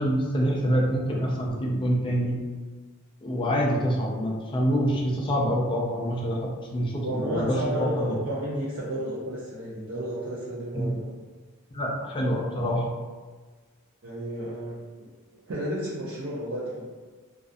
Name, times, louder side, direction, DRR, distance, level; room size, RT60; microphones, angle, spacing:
voice 1, 0.0-2.4 3.2-8.2 10.7-10.9 11.7-12.9, equal, 25° left, -2 dB, 0.4 m, -26 dB
voice 2, 7.0-11.1 14.0-16.9, right 1 dB, 65° right, -8 dB, 0.5 m, -32 dB
2.4 x 2.2 x 2.5 m, 1.4 s
head